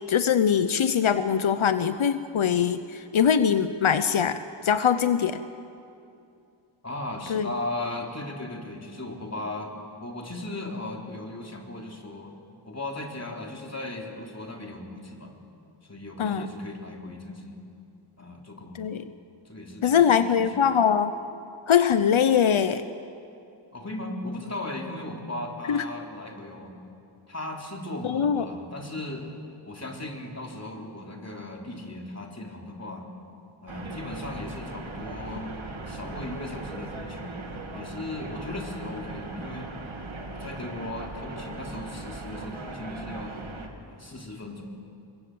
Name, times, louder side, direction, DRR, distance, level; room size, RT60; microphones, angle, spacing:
voice 1, 0.0-5.4 7.3-7.5 16.2-16.5 18.8-19.0 19.8-21.1 21.7-22.8 25.7-25.8 28.0-28.5, left 8 dB, 90° left, 11 dB, 0.8 m, -22 dB
voice 2, 6.8-9.7 10.0-12.3 12.6-15.3 15.9-17.6 18.2-18.8 19.4-20.6 23.7-26.8 27.3-29.3 29.6-33.0 33.6-35.5 35.9-37.4 37.7-39.8 40.3-43.3 43.9-44.6, left 2 dB, 35° left, 1 dB, 3.5 m, -37 dB
sound 1, 33.7-43.7, right 2 dB, 80° right, 2.4 m, -39 dB
27.5 x 22.5 x 7.8 m, 2.6 s
wide cardioid pair, 75°, 47 cm